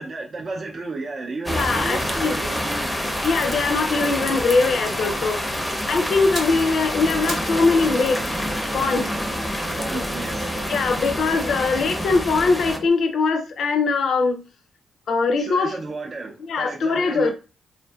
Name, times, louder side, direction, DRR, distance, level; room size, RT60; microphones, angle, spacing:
voice 1, 0.0-3.0 9.8-10.6 15.4-17.3, right 3 dB, 50° right, 0.4 m, -33 dB
voice 2, 1.5-2.4 3.2-5.5 5.9-8.2 8.7-9.1 9.9-10.0 10.7-14.4 15.1-15.8 16.5-17.3, left 4 dB, 70° left, 0.5 m, -21 dB
sound 1, 1.5-12.8, equal, 10° left, 0.5 m, -27 dB
sound 2, 6.2-7.7 8.0-11.2 12.0-14.1 14.3-14.5, right 2 dB, 80° right, 0.7 m, -41 dB
sound 3, 7.0-12.9, right 1 dB, 20° right, 0.9 m, -34 dB
2.5 x 2.5 x 2.2 m
supercardioid pair, 60°, 0 cm